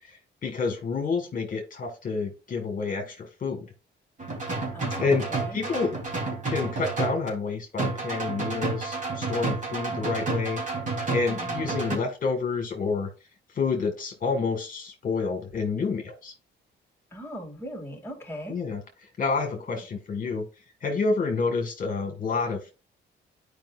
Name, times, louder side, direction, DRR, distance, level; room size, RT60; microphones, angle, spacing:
voice 1, 0.1-3.7 5.0-5.9 6.5-10.6 11.1-13.1 13.6-16.3 18.5-18.8 19.2-20.5 20.8-22.7, left 4 dB, 45° left, 3 dB, 1.7 m, -29 dB
sound 1, 4.2-7.3 7.8-12.0, right 3 dB, 40° right, 3.3 m, -30 dB
voice 2, 4.7-5.6 11.3-11.8 17.1-18.6, equal, 10° left, 2 dB, 2.6 m, -39 dB
10.5 x 5.1 x 2.5 m, 0.32 s
cardioid pair, 90°, 20 cm